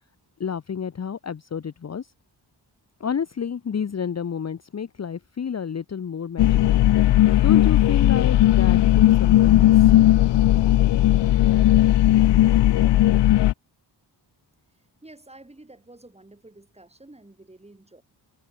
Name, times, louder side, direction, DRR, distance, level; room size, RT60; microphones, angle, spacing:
voice 1, 0.4-2.1 3.0-6.8 7.4-9.9, left 7 dB, 35° left, 0.8 m, -30 dB
sound 1, 6.4-13.5, left 14 dB, 70° left, 0.5 m, -17 dB
voice 2, 14.7-18.0, right 2 dB, 15° right, 7.2 m, -49 dB
wide cardioid pair, 165°, 43 cm